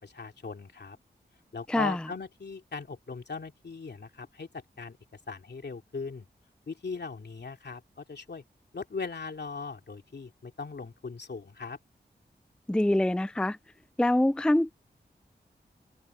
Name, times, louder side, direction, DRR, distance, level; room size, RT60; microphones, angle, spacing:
voice 1, 0.0-1.0 1.5-4.5 4.8-5.0 5.3-6.3 6.7-8.4 8.7-11.8, left 4 dB, 70° left, 2.7 m, -39 dB
voice 2, 1.7-2.0 12.7-13.6 14.0-14.7, left 1 dB, 5° left, 0.4 m, -25 dB
cardioid pair, 50°, 18 cm